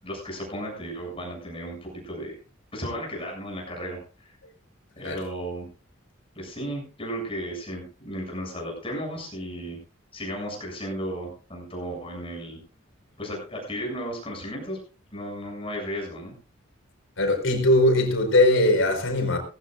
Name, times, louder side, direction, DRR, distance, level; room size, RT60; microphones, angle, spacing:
voice 1, 0.0-2.4 2.7-4.4 5.0-5.7 6.4-9.8 10.1-12.6 13.2-14.8 15.1-16.3, equal, 25° left, 7.3 m, -34 dB
voice 2, 17.2-19.4, left 1 dB, 75° left, 4.9 m, -20 dB
19.0 x 15.5 x 2.6 m
head